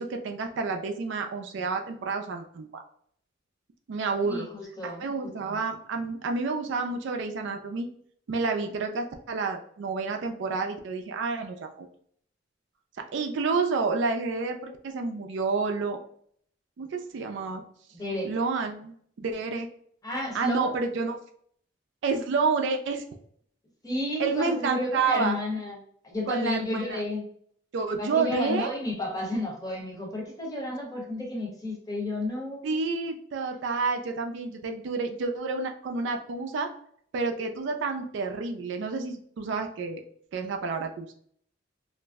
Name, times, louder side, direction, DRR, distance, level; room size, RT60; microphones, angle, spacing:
voice 1, 0.0-2.7 3.9-4.5 4.8-7.9 8.3-11.9 13.1-16.0 16.8-17.6 18.2-19.7 20.3-21.2 22.0-23.0 24.2-25.4 26.3-27.0 27.7-28.7 32.6-36.7 37.1-40.0 40.3-41.1, right 4 dB, 65° right, 4 dB, 0.4 m, -29 dB
voice 2, 4.2-5.6 17.9-18.3 20.0-20.7 23.8-25.8 26.0-27.3 28.0-32.8, left 1 dB, 20° left, -1 dB, 0.8 m, -32 dB
2.5 x 2.0 x 3.4 m, 0.62 s
head